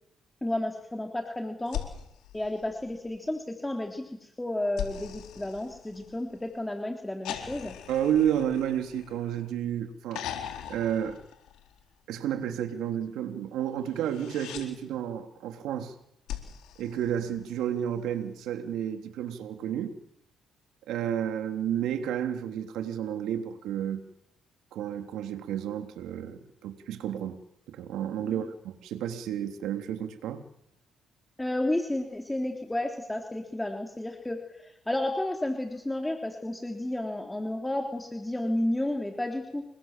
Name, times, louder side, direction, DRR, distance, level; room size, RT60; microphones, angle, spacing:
voice 1, 0.4-1.8 2.3-7.8 28.3-28.5 31.4-39.6, left 1 dB, 10° left, 3.7 m, -32 dB
sound 1, 1.7-3.3 4.8-6.4 7.3-9.5 10.1-11.9 13.9-14.7 16.3-17.8 19.3-19.4, left 10 dB, 85° left, 4.3 m, -40 dB
voice 2, 7.9-10.3 10.7-11.2 12.1-15.9 16.8-19.9 20.9-24.0 24.7-27.4 27.7-30.4, right 10 dB, 85° right, 3.2 m, -31 dB
29.5 x 23.0 x 7.6 m
cardioid pair, 95°, 0 cm